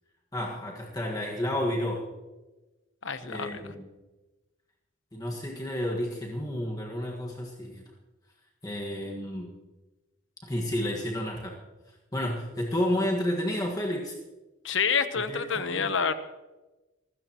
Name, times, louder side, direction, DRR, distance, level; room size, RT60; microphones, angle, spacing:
voice 1, 0.3-2.1 3.2-3.9 5.1-7.8 8.6-9.5 10.4-11.6 12.1-14.1 15.3-15.4 15.7-16.0, left 1 dB, 20° left, -1 dB, 1.6 m, -31 dB
voice 2, 3.0-3.6 14.6-16.1, left 6 dB, 70° left, 11 dB, 1.0 m, -28 dB
24.5 x 13.5 x 3.0 m, 1.1 s
head